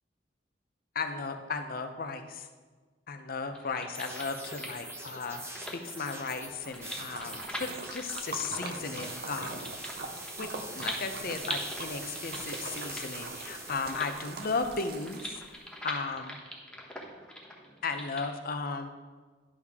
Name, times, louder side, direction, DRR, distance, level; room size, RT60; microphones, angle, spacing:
voice 1, 0.9-2.5 3.1-9.7 10.4-10.5 10.7-15.4 15.8-16.4 17.8-18.9, left 4 dB, 55° left, 7 dB, 0.7 m, -35 dB
sound 1, 3.5-18.3, equal, 5° left, 1.2 m, -43 dB
sound 2, 3.9-15.3, right 1 dB, 15° right, 1.0 m, -44 dB
Splash splatter, 6.4-15.6, right 4 dB, 60° right, 0.7 m, -43 dB
11.0 x 6.4 x 3.6 m, 1.4 s
head